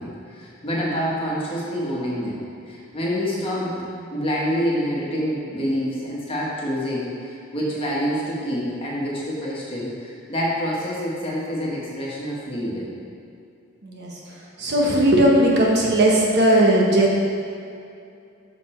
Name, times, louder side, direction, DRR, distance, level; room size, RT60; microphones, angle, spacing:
voice 1, 0.0-2.4 2.7-12.9, equal, 25° left, -6 dB, 1.3 m, -27 dB
voice 2, 13.8-17.2, right 1 dB, 50° right, -2 dB, 1.0 m, -18 dB
6.7 x 5.6 x 4.4 m, 2.5 s
head